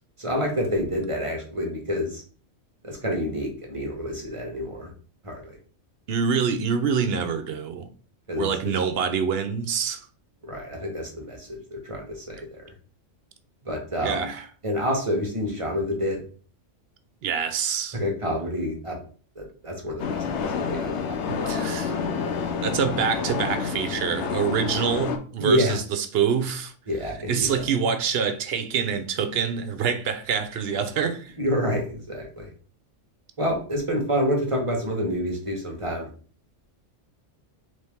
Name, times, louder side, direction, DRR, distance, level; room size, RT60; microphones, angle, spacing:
voice 1, 0.2-2.2 2.8-4.9 5.2-5.4 8.3-8.5 10.4-12.7 13.7-14.3 14.6-16.2 17.9-19.0 19.4-22.3 25.4-25.8 26.9-27.6 31.4-32.5 33.4-36.1, equal, 30° right, 1.0 m, -28 dB
voice 2, 6.1-7.9 8.4-10.0 14.0-14.4 17.2-18.0 21.3-21.9 22.6-26.7 27.3-31.3, right 7 dB, 60° right, 0.8 m, -26 dB
sound 1, 20.0-25.2, left 6 dB, 70° left, 0.9 m, -28 dB
4.3 x 3.3 x 3.5 m
omnidirectional pair, 1.3 m